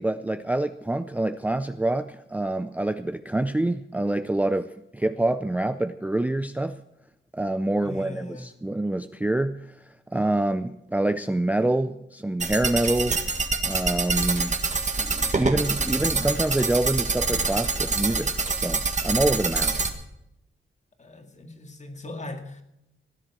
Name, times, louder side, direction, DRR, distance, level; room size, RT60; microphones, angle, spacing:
voice 1, 0.0-6.8 7.3-9.7 10.1-13.2 13.6-14.6 15.0-19.8, right 1 dB, 5° right, 11 dB, 0.5 m, -26 dB
voice 2, 7.8-8.5 19.7-19.9 21.0-22.6, left 2 dB, 35° left, 5 dB, 2.2 m, -40 dB
sound 1, 12.4-19.9, right 4 dB, 35° right, 1.6 m, -26 dB
17.0 x 10.5 x 6.2 m, 0.83 s
wide cardioid pair, 170°, 21 cm